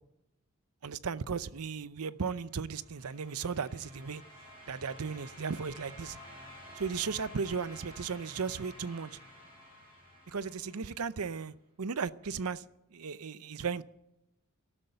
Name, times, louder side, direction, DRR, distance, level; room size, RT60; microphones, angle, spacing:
voice 1, 0.8-4.2 4.7-6.2 6.8-9.2 10.3-12.7 12.9-13.8, right 5 dB, 80° right, 0.6 m, -36 dB
sound 1, 2.4-11.3, equal, 25° right, 6.4 m, -52 dB
13.5 x 12.5 x 7.8 m
head